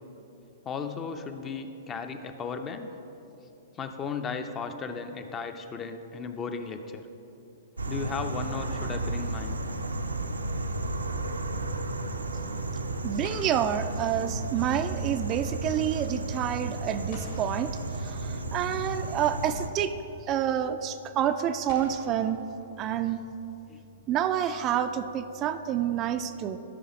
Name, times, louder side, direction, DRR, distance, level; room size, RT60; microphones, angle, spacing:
voice 1, 0.7-2.9 3.8-7.1 7.9-9.6 23.7-23.8, left 5 dB, 25° left, 8 dB, 0.5 m, -35 dB
sound 1, 7.8-19.7, right 2 dB, 90° right, 0.6 m, -33 dB
voice 2, 13.0-19.9 20.3-22.4 22.8-23.2 24.1-26.6, right 9 dB, 30° right, 8 dB, 0.3 m, -28 dB
sound 2, 13.2-14.9 17.1-18.7 20.0-20.1 21.7-23.3, left 2 dB, 55° left, 1.8 m, -49 dB
12.0 x 5.5 x 4.2 m, 2.9 s
figure-of-eight pair, 115°, 0 cm